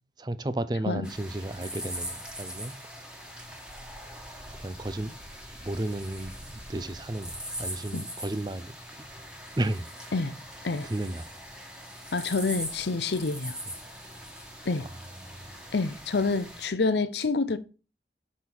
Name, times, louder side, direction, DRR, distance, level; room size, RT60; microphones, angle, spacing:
voice 1, 0.2-2.7 4.6-5.1 5.6-6.3 6.7-8.7 9.6-10.1 10.8-11.3 14.8-14.9 15.2-15.7, right 1 dB, 25° right, 0.5 m, -33 dB
sound 1, 1.0-16.7, equal, 5° right, 1.4 m, -41 dB
voice 2, 12.1-13.6 14.7-14.9 15.7-17.6, left 3 dB, 75° left, 0.7 m, -27 dB
6.4 x 5.5 x 6.0 m
head